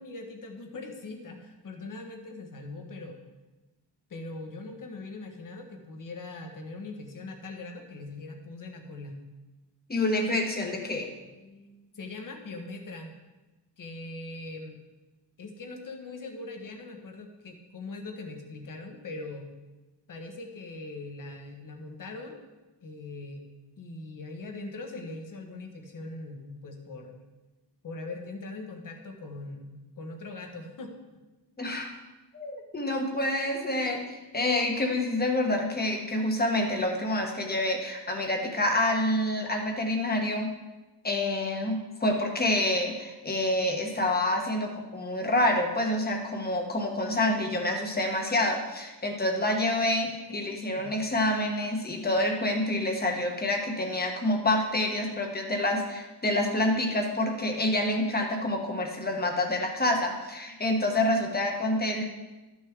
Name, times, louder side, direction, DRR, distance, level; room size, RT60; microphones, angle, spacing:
voice 1, 0.0-3.2 4.1-9.2 11.3-13.1 13.8-14.8 15.4-19.5 20.1-22.4 22.8-23.5 23.8-27.2 27.8-30.9 50.1-50.4 50.7-51.0, left 2 dB, 50° left, 3 dB, 1.3 m, -41 dB
voice 2, 9.9-11.1 31.6-31.9 32.3-40.5 41.0-62.0, left 1 dB, 20° left, 2 dB, 1.2 m, -27 dB
12.5 x 6.3 x 3.6 m, 1.1 s
wide cardioid pair, 150°, 42 cm